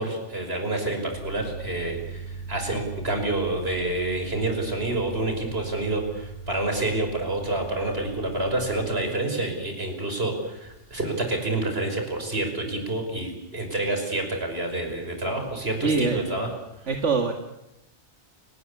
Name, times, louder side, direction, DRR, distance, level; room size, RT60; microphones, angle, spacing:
voice 1, 0.0-16.5, right 2 dB, 60° right, 4 dB, 5.9 m, -28 dB
sound 1, 1.1-8.9, right 4 dB, 55° left, 3.6 m, -39 dB
voice 2, 15.8-16.2 16.9-17.3, right 4 dB, 80° right, 4 dB, 2.2 m, -23 dB
29.5 x 18.5 x 8.5 m, 0.91 s
omnidirectional pair, 1.2 m